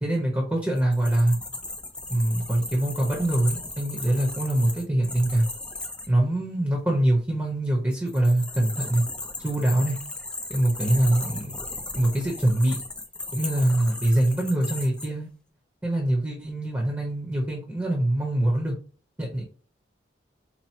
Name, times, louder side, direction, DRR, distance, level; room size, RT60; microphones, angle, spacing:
voice 1, 0.0-1.4 2.1-5.5 6.1-9.0 9.4-10.0 10.5-11.6 11.9-12.8 13.3-15.3 15.8-18.7 19.2-19.4, right 1 dB, 10° right, 0 dB, 0.8 m, -24 dB
sound 1, 0.8-6.1 7.9-15.1, left 2 dB, 5° left, 0.4 m, -36 dB
4.3 x 2.1 x 4.3 m, 0.39 s
head